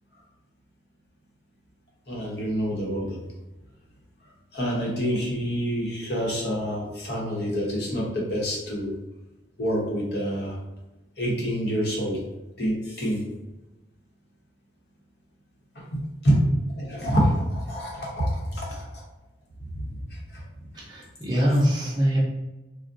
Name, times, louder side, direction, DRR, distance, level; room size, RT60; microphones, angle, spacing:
voice 1, 2.1-3.2 4.5-8.9 9.6-10.6 11.2-12.2 12.6-13.2 15.8-19.0 19.8-20.0 20.3-20.4, equal, 65° left, -3 dB, 0.9 m, -27 dB
voice 2, 20.7-22.2, equal, 25° right, -4 dB, 0.6 m, -23 dB
3.5 x 2.1 x 2.6 m, 1.0 s
head